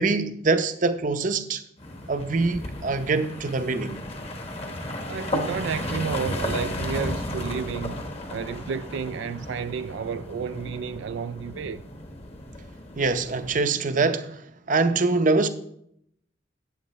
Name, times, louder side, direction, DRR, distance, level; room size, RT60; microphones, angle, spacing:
voice 1, 0.0-1.6 2.1-4.0 13.0-14.4 14.7-15.5, right 3 dB, 45° right, 0.6 m, -24 dB
sound 1, 1.8-13.6, left 1 dB, 35° left, 1.2 m, -34 dB
voice 2, 5.1-11.8, right 6 dB, 75° right, 0.3 m, -31 dB
14.0 x 9.0 x 3.1 m
head